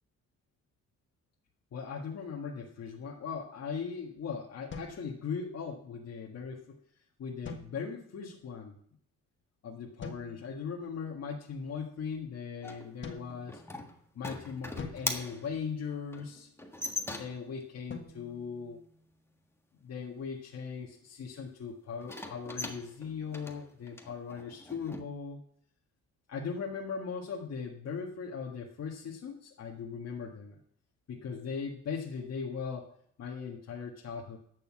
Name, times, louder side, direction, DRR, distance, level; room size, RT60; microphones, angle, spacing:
voice 1, 1.7-6.8 7.2-8.8 9.6-13.6 14.1-16.5 17.1-18.8 19.8-25.4 26.3-30.6 31.1-32.9 33.2-34.4, left 6 dB, 60° left, -2 dB, 1.7 m, -39 dB
sound 1, 4.7-5.8 7.4-8.3 10.0-10.7 13.0-14.1 14.8-16.2 17.9-19.4, left 4 dB, 40° left, 1.6 m, -47 dB
sound 2, 12.6-17.6 22.0-25.0, left 2 dB, 10° left, 1.5 m, -40 dB
11.0 x 6.8 x 6.2 m, 0.65 s
cardioid pair, 90°, 30 cm